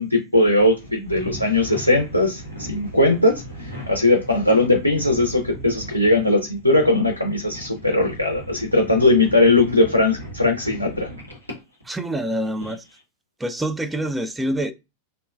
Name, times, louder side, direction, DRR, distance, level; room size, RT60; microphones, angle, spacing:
voice 1, 0.0-11.1, left 2 dB, 85° left, 0.4 m, -19 dB
sound 1, 0.6-12.0 12.3-13.0, equal, 90° right, 0.9 m, -38 dB
voice 2, 11.9-12.8 13.4-14.7, right 1 dB, 10° right, 0.3 m, -26 dB
2.9 x 2.1 x 2.2 m
figure-of-eight pair, 90°, 0 cm